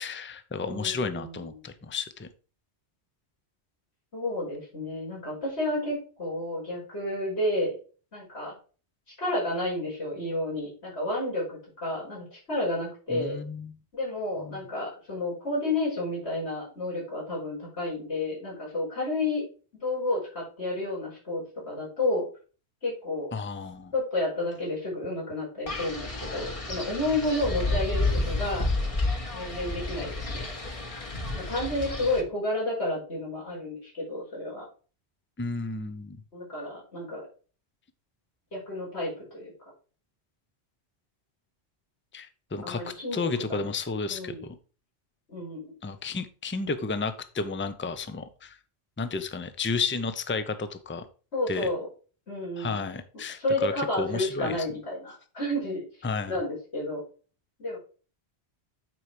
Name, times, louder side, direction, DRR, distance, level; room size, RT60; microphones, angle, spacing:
voice 1, 0.0-2.3 13.1-13.7 14.4-14.7 23.3-23.9 35.4-36.2 42.1-44.6 45.8-48.6 49.0-51.0 51.5-51.7 52.6-54.7 56.0-56.4, left 4 dB, 15° left, 10 dB, 0.5 m, -32 dB
voice 2, 0.6-1.6 4.1-7.8 8.1-8.5 9.2-13.4 13.9-19.4 19.8-22.3 22.8-23.3 23.9-28.7 29.3-30.4 31.3-34.7 36.3-37.2 38.5-39.5 42.6-43.6 44.1-44.4 45.3-45.7 51.3-51.9 52.3-52.8 53.4-55.8 56.3-57.0 57.6-57.8, left 1 dB, 70° left, -6 dB, 5.8 m, -31 dB
Wind, 25.7-32.2, left 2 dB, 30° left, 1.4 m, -30 dB
9.3 x 4.6 x 4.9 m, 0.38 s
omnidirectional pair, 1.1 m